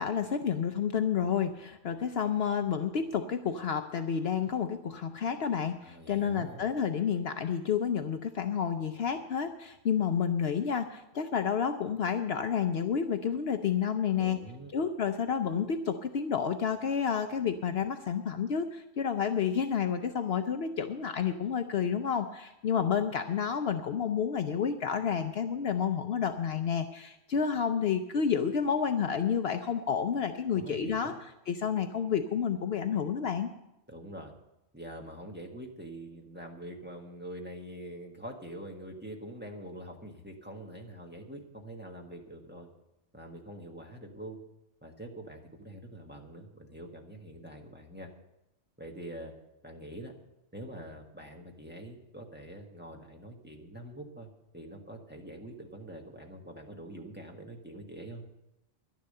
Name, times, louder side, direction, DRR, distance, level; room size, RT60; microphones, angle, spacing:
voice 1, 0.0-14.4 14.7-31.1 31.5-33.5, left 7 dB, 60° left, 7 dB, 0.9 m, -30 dB
voice 2, 5.8-6.6 14.2-14.7 30.5-31.1 33.9-34.3 34.7-42.7 43.1-44.4 44.8-48.1 48.8-49.3 49.6-50.1 50.5-58.2, right 1 dB, 10° right, 1 dB, 1.4 m, -45 dB
11.5 x 10.5 x 6.6 m, 0.90 s
omnidirectional pair, 1.3 m